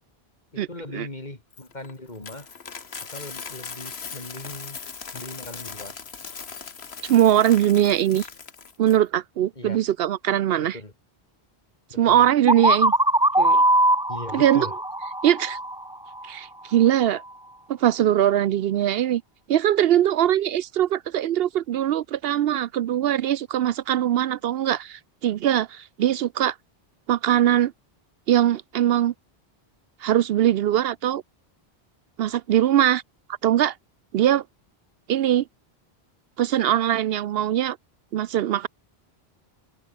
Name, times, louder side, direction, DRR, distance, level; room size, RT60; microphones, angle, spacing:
voice 1, 0.5-2.5 3.1-4.8 5.1-6.0 9.6-9.8 10.6-10.9 11.9-12.3 14.1-14.7, left 2 dB, 45° left, 3.9 m, -39 dB
Coin (dropping), 1.5-9.0, left 5 dB, 80° left, 1.8 m, -39 dB
voice 2, 7.0-8.3 8.8-10.8 12.0-12.9 13.4-13.6 14.3-14.7 15.2-15.6 16.3-17.2 17.7-19.2 19.5-26.5 27.1-27.7 28.3-29.1 30.0-31.2 32.2-33.0 33.4-33.7 34.1-34.4 35.1-35.4 36.4-37.8 38.1-38.7, right 11 dB, 70° right, 0.8 m, -21 dB
sound 1, 12.5-16.2, right 1 dB, 5° right, 0.3 m, -21 dB
omnidirectional pair, 1.0 m